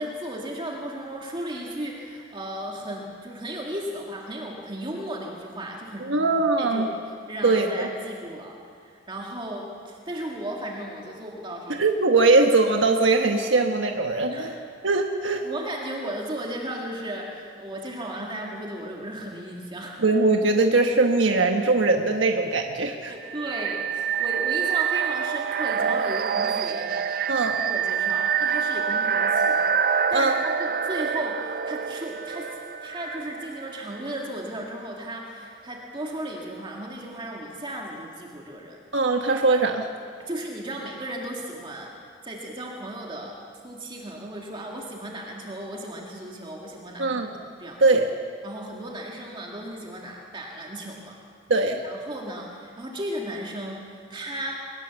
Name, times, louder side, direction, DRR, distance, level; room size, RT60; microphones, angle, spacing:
voice 1, 0.0-6.3 6.6-6.9 7.3-11.8 14.3-14.5 15.4-20.0 23.1-27.0 27.3-38.8 40.2-41.9 42.2-43.4 43.6-47.8 48.4-51.2 51.8-54.6, right 1 dB, 25° right, -1 dB, 2.1 m, -35 dB
voice 2, 6.0-6.9 7.4-7.9 11.7-14.5 14.8-15.4 20.0-23.1 27.3-27.5 30.1-30.4 38.9-39.9 47.0-47.4 47.8-48.1 51.5-51.8, right 3 dB, 75° right, 3 dB, 1.3 m, -21 dB
sound 1, 23.2-34.0, right 7 dB, 50° right, 0.5 m, -26 dB
23.0 x 19.5 x 7.1 m, 2.3 s
head